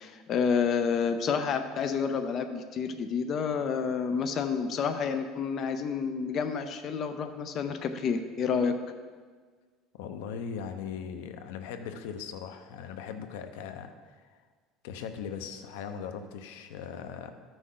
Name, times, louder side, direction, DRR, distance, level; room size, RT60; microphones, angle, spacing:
voice 1, 0.0-8.7, left 6 dB, 35° left, 7 dB, 0.5 m, -29 dB
voice 2, 9.9-14.2 14.8-17.3, left 7 dB, 90° left, 8 dB, 0.8 m, -39 dB
13.5 x 6.2 x 3.8 m, 1.5 s
cardioid pair, 165°, 0 cm